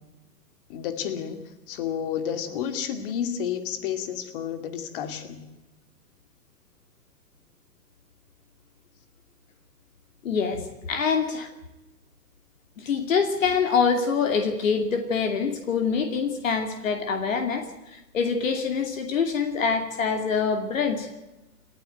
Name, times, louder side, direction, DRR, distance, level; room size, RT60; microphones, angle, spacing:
voice 1, 0.7-5.5, left 8 dB, 30° left, 10 dB, 2.4 m, -31 dB
voice 2, 10.2-11.5 12.8-21.1, left 5 dB, 50° left, 7 dB, 2.7 m, -25 dB
29.5 x 11.5 x 9.2 m, 1.0 s
figure-of-eight pair, 120°, 48 cm